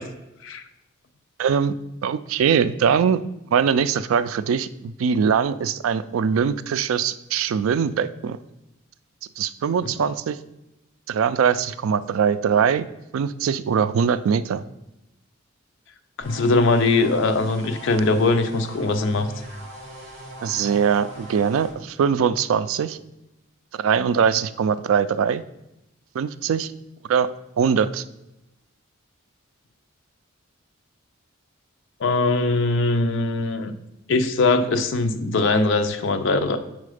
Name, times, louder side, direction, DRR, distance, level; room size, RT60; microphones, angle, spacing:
voice 1, 1.4-1.7 2.0-3.2 3.5-8.4 9.4-10.4 11.1-12.9 13.1-14.6 20.4-23.0 23.8-25.4 26.1-26.7 27.1-27.3 27.6-28.0, right 7 dB, 75° right, 14 dB, 0.3 m, -22 dB
voice 2, 16.2-19.3 32.0-33.7 34.1-36.6, left 3 dB, 60° left, 8 dB, 0.5 m, -21 dB
sound 1, 16.2-21.7, right 1 dB, 35° right, 1.7 m, -40 dB
4.7 x 4.2 x 4.9 m, 0.90 s
head